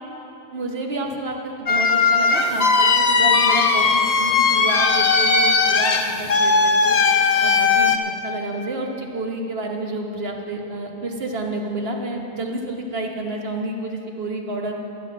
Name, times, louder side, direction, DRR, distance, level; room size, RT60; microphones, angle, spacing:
voice 1, 0.5-7.0 7.4-7.9 8.2-14.7, right 2 dB, 60° right, 1 dB, 1.4 m, -29 dB
sound 1, 1.7-8.0, left 4 dB, 40° left, 0.7 m, -18 dB
11.5 x 11.0 x 5.9 m, 3.0 s
omnidirectional pair, 1.2 m